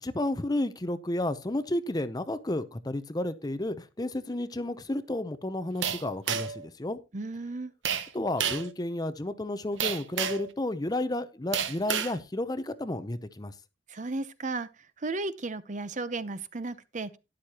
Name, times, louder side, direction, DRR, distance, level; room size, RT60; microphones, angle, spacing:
voice 1, 0.0-7.0 8.1-13.5, left 1 dB, 20° left, 0.6 m, -32 dB
sound 1, 5.8-6.6 7.8-8.1 8.4-8.7 9.8-10.5 11.5-12.1, right 8 dB, 85° right, 1.0 m, -30 dB
voice 2, 7.1-7.7 13.9-14.7 15.0-17.1, right 3 dB, 40° right, 0.7 m, -34 dB
12.5 x 10.5 x 2.9 m
head